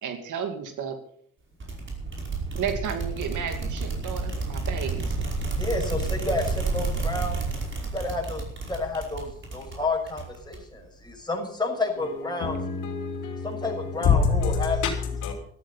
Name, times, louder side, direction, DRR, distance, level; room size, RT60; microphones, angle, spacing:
voice 1, 0.0-1.0 2.5-5.2, right 7 dB, 75° right, 7 dB, 2.6 m, -32 dB
sound 1, 1.6-10.8, right 3 dB, 40° right, 5.3 m, -30 dB
voice 2, 5.6-7.4 7.9-12.6 13.4-14.8, left 2 dB, 15° left, 1 dB, 6.4 m, -30 dB
voice 3, 12.0-15.3, left 5 dB, 90° left, 4 dB, 3.0 m, -26 dB
14.0 x 13.0 x 5.7 m, 0.62 s
cardioid pair, 75°, 30 cm